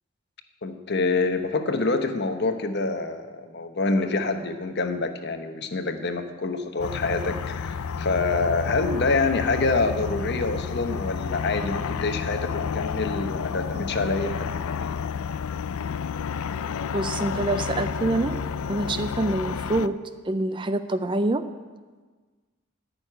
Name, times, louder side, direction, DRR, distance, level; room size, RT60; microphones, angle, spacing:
voice 1, 0.6-15.0, left 3 dB, 50° left, 7 dB, 1.0 m, -26 dB
sound 1, 6.8-19.9, left 6 dB, 75° left, 0.4 m, -30 dB
voice 2, 16.9-18.4 18.7-20.0 20.2-21.5, right 2 dB, 20° right, 10 dB, 0.4 m, -26 dB
14.0 x 6.4 x 9.9 m, 1.4 s
head